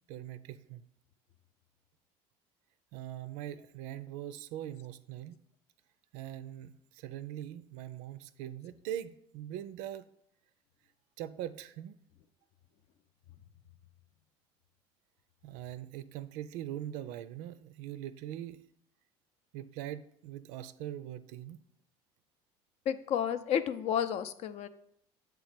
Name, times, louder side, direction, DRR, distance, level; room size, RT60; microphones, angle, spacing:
voice 1, 0.1-0.8 2.9-5.4 6.1-10.1 11.2-11.9 15.4-18.6 19.5-21.6, right 12 dB, 80° right, 14 dB, 0.4 m, -42 dB
voice 2, 22.9-24.7, left 9 dB, 55° left, 11 dB, 0.5 m, -31 dB
7.6 x 3.1 x 5.0 m, 0.72 s
supercardioid pair, 100°, 13 cm